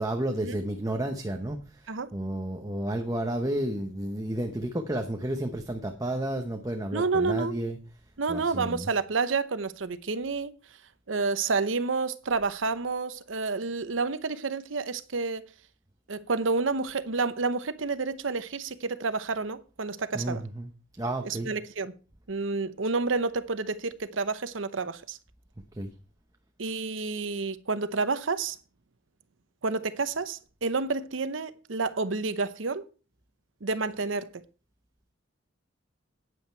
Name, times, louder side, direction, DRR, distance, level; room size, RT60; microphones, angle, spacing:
voice 1, 0.0-7.8 8.3-8.9 20.1-20.7 21.0-21.5 25.7-25.9, right 1 dB, 20° right, 0.9 m, -31 dB
voice 2, 6.9-7.6 8.2-10.5 11.1-15.5 16.1-20.4 21.2-21.9 22.3-25.2 26.6-28.6 29.6-32.8 33.6-34.4, right 4 dB, 90° right, 0.8 m, -29 dB
9.6 x 8.7 x 4.5 m
head